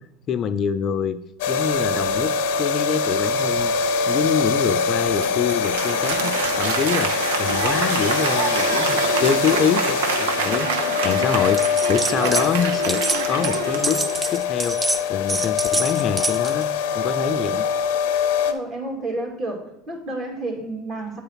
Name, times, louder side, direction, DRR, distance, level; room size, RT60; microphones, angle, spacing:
voice 1, 0.3-1.2 1.5-3.7 4.0-14.0 14.3-14.8 15.1-16.7 16.9-17.6, left 7 dB, 40° left, 10 dB, 0.4 m, -25 dB
sound 1, 1.4-18.5, left 5 dB, 80° left, 0.8 m, -24 dB
Applause, 4.9-14.5, right 6 dB, 90° right, 0.8 m, -27 dB
sound 2, 11.6-12.5 12.7-16.6, right 2 dB, 15° right, 0.4 m, -27 dB
voice 2, 18.4-21.2, right 2 dB, 40° right, 1 dB, 2.5 m, -30 dB
9.0 x 3.9 x 5.7 m, 0.82 s
supercardioid pair, 110°, 0 cm